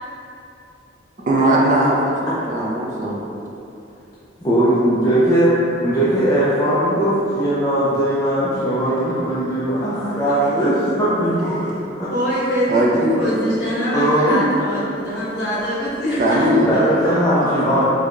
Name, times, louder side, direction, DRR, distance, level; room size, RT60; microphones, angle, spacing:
voice 1, 1.3-2.0 2.2-3.2 8.7-9.0 9.6-9.7 12.7-13.2 16.2-16.7, right 1 dB, 45° right, -3 dB, 0.4 m, -19 dB
voice 2, 4.4-5.5 5.8-10.7 11.0-11.5 12.0-12.1 13.9-14.4 16.7-17.9, right 1 dB, 20° left, -10 dB, 0.4 m, -19 dB
voice 3, 10.3-10.7 12.0-17.9, equal, 60° left, -10 dB, 1.3 m, -24 dB
4.5 x 2.1 x 2.5 m, 2.8 s
head